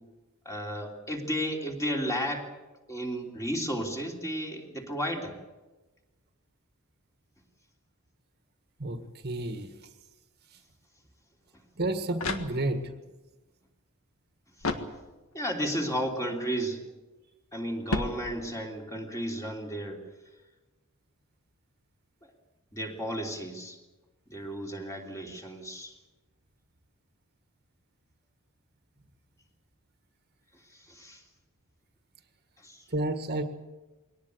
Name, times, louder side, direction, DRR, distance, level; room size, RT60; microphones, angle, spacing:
voice 1, 0.4-2.5 2.9-5.3 15.3-16.8 17.5-20.0 22.7-23.8 24.3-25.9 30.9-31.2 32.6-32.8, equal, 15° left, 1 dB, 3.2 m, -33 dB
voice 2, 9.2-9.7 11.8-12.9 32.9-33.4, right 2 dB, 50° right, 7 dB, 1.8 m, -30 dB
sound 1, 11.7-13.0 14.6-15.5 17.9-18.8, left 2 dB, 75° left, 1.7 m, -34 dB
22.0 x 18.5 x 8.2 m, 1.1 s
head